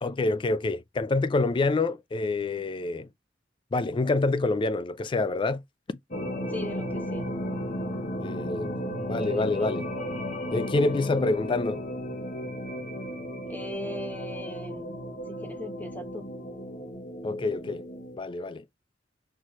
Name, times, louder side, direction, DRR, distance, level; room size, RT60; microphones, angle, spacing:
voice 1, 0.0-3.1 3.7-5.6 8.2-8.8 9.1-9.9 10.5-11.8 17.2-17.9 18.2-18.6, left 3 dB, 25° left, 0.3 m, -27 dB
sound 1, 6.1-18.2, equal, 45° left, 1.0 m, -34 dB
voice 2, 6.5-7.3 13.4-15.0 15.3-16.3, left 1 dB, 10° left, 0.8 m, -38 dB
4.3 x 3.1 x 2.9 m
head